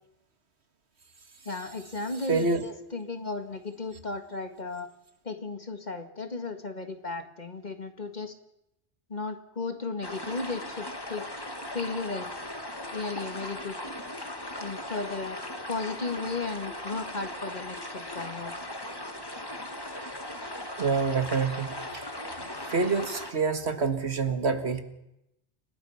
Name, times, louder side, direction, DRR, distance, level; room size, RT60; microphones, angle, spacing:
voice 1, 1.5-4.9 5.3-8.3 9.1-11.3 11.7-12.3 12.9-13.8 14.6-15.4 15.7-18.5, left 3 dB, 40° left, 7 dB, 2.0 m, -35 dB
voice 2, 2.3-2.6 20.8-21.7 21.9-22.0 22.7-24.8, right 4 dB, 75° right, 8 dB, 2.0 m, -26 dB
sound 1, 10.0-23.3, left 1 dB, 20° left, 1.9 m, -38 dB
29.5 x 18.5 x 5.7 m, 0.85 s
omnidirectional pair, 1.1 m